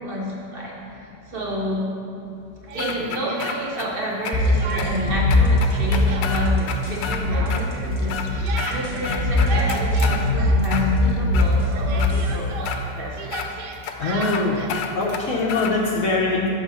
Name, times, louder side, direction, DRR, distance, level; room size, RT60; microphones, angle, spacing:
voice 1, 0.0-1.9 2.7-13.5, equal, 50° right, -3 dB, 0.7 m, -30 dB
Speech, 2.7-4.0 4.3-5.2 5.4-11.1 11.4-14.8, right 4 dB, 80° right, 1.3 m, -35 dB
sound 1, 2.8-3.9 4.3-4.4 4.8-4.9 5.3-7.2 7.5-7.6 8.0-8.8 9.0-10.2 10.6-11.5 12.0-12.1 12.7-12.8 13.3-13.5 13.8-13.9 14.2-14.4 14.7-15.7, left 7 dB, 90° left, 1.2 m, -30 dB
sound 2, 4.3-12.3, left 2 dB, 20° left, 0.5 m, -21 dB
voice 2, 14.0-14.6 15.0-16.5, left 3 dB, 60° left, -2 dB, 1.0 m, -22 dB
5.5 x 4.4 x 6.0 m, 2.8 s
omnidirectional pair, 1.9 m